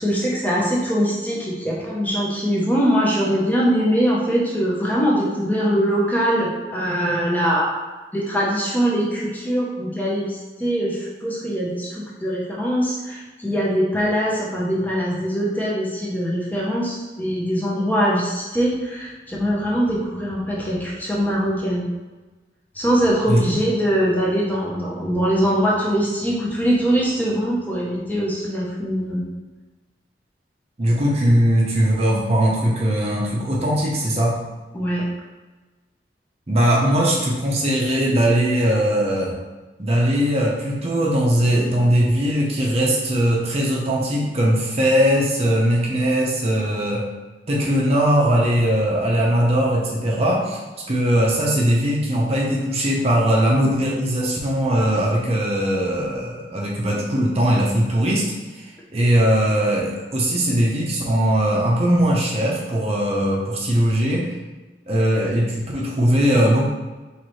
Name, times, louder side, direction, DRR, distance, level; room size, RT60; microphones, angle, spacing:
voice 1, 0.0-7.7 8.1-21.9 22.7-29.2 34.7-35.0, equal, 10° left, -5 dB, 0.8 m, -22 dB
voice 2, 30.8-34.4 36.5-39.3 39.8-47.0 47.5-50.6 50.9-58.3 58.5-58.6 58.9-64.3 64.9-66.7, equal, 35° right, -3 dB, 0.7 m, -20 dB
4.5 x 3.2 x 3.1 m, 1.2 s
head